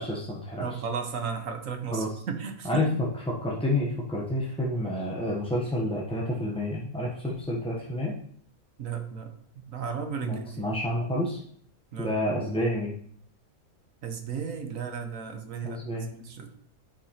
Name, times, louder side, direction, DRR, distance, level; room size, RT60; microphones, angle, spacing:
voice 1, 0.0-0.8 1.9-2.1 2.6-3.1 3.4-8.1 10.2-11.4 12.0-12.9 15.6-16.1, left 1 dB, 5° left, -4 dB, 0.5 m, -29 dB
voice 2, 0.6-3.0 8.8-9.3 9.7-10.6 11.9-12.1 14.0-16.5, right 6 dB, 65° right, 5 dB, 1.2 m, -34 dB
11.0 x 4.8 x 2.8 m, 0.63 s
omnidirectional pair, 1.5 m